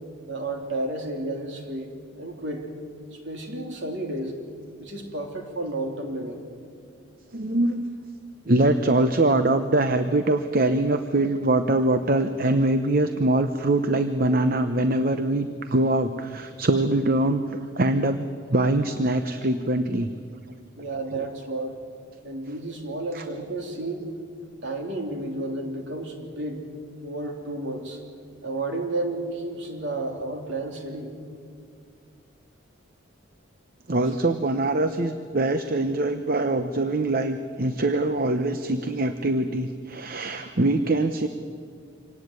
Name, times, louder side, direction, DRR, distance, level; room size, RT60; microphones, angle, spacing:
voice 1, 0.3-2.7 3.1-4.4 4.8-6.4 20.8-21.7 22.2-24.1 24.6-26.6 27.0-28.0 28.4-31.1, right 2 dB, 60° right, 2 dB, 3.4 m, -32 dB
voice 2, 7.3-7.9 8.5-20.1 23.1-23.2 33.9-41.3, right 2 dB, 45° right, 9 dB, 0.8 m, -23 dB
25.5 x 18.0 x 9.6 m, 2.3 s
head